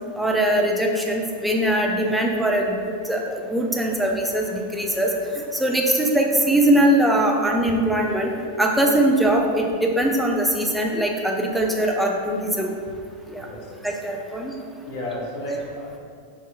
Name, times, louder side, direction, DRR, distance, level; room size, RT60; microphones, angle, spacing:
voice 1, 0.2-5.1 5.5-8.3 8.6-12.7 13.3-13.5 13.8-14.5, right 1 dB, 5° right, 0 dB, 0.4 m, -21 dB
voice 2, 13.4-13.7 14.8-16.0, equal, 50° left, -4 dB, 0.8 m, -32 dB
4.4 x 2.8 x 2.2 m, 2.2 s
figure-of-eight pair, 90°, 0 cm